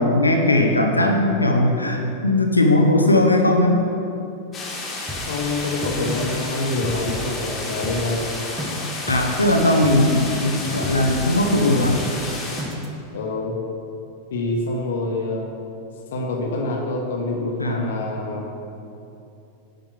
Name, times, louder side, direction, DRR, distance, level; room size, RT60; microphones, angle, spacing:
voice 1, 0.0-3.8 9.1-12.0 17.6-17.9, left 1 dB, 85° left, 2 dB, 1.0 m, -18 dB
sound 1, 4.5-12.6, left 2 dB, 20° left, 2.2 m, -32 dB
sound 2, 5.1-13.0, equal, 10° right, 1.5 m, -32 dB
voice 2, 5.3-8.3 10.6-11.0 13.1-13.6 14.3-15.5 16.1-18.7, left 2 dB, 60° left, 0 dB, 1.4 m, -26 dB
10.5 x 5.2 x 6.3 m, 2.8 s
figure-of-eight pair, 90°, 0 cm